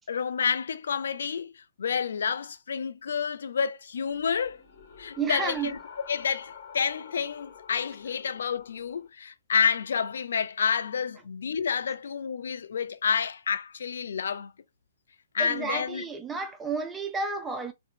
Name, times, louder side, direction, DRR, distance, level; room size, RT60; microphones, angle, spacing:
voice 1, 0.1-4.6 5.0-5.8 6.1-14.5 15.3-16.0, left 6 dB, 60° left, 0.3 m, -29 dB
sound 1, 4.0-9.1, left 6 dB, 45° left, 1.0 m, -48 dB
voice 2, 5.2-5.7 15.4-17.7, right 4 dB, 10° right, 0.4 m, -31 dB
3.5 x 2.1 x 2.7 m
figure-of-eight pair, 120°, 0 cm